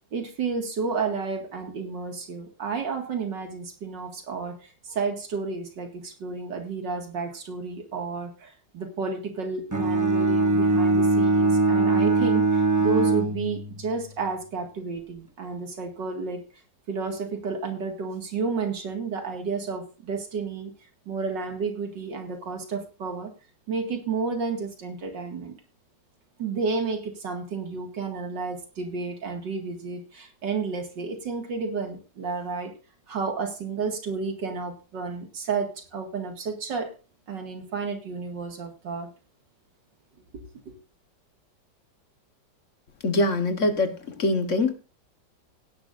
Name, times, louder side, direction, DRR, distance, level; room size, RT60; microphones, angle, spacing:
voice 1, 0.1-16.4 16.9-20.7 21.1-23.3 23.7-25.6 26.4-32.7 33.1-36.9 37.3-39.1, right 4 dB, 70° right, 2.7 m, -31 dB
Bowed string instrument, 9.7-14.0, right 3 dB, 30° right, 0.3 m, -22 dB
voice 2, 43.0-44.7, left 2 dB, 45° left, 1.5 m, -24 dB
16.5 x 11.0 x 2.6 m
omnidirectional pair, 2.0 m